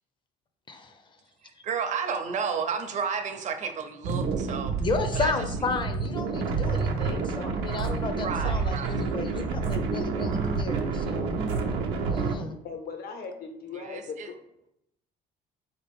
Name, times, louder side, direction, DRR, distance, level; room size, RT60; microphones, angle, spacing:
voice 1, 0.7-1.0 4.8-11.3 12.1-12.6, left 4 dB, 30° left, 7 dB, 0.5 m, -33 dB
voice 2, 1.4-4.9 5.1-5.3 8.1-9.0 13.7-14.3, right 6 dB, 45° right, 6 dB, 0.6 m, -32 dB
sound 1, 4.0-12.3, right 4 dB, 85° right, 0.6 m, -28 dB
voice 3, 12.6-14.4, left 5 dB, 65° left, 6 dB, 0.8 m, -38 dB
4.0 x 2.9 x 3.5 m, 0.79 s
cardioid pair, 110°, 17 cm